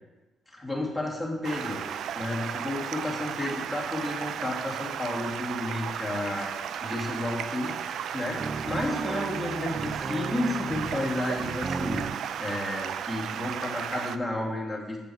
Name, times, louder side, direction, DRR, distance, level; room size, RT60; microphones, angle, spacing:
voice 1, 0.5-1.8 2.1-8.4 8.7-12.0 12.4-15.0, left 1 dB, ahead, -3 dB, 2.4 m, -32 dB
Stream, 1.4-14.2, right 8 dB, 70° right, 0.3 m, -34 dB
sound 1, 8.4-12.2, right 4 dB, 30° right, 0.6 m, -35 dB
6.9 x 6.7 x 4.6 m, 1.1 s
cardioid pair, 90°, 0 cm